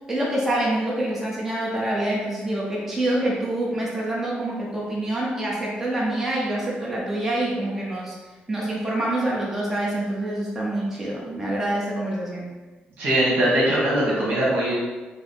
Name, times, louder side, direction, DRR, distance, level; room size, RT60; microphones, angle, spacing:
voice 1, 0.1-8.2 8.5-12.5, right 1 dB, 10° right, -5 dB, 0.8 m, -26 dB
voice 2, 13.0-14.7, right 1 dB, 60° right, -6 dB, 1.4 m, -21 dB
4.8 x 2.0 x 4.1 m, 1.3 s
cardioid pair, 160°, 3 cm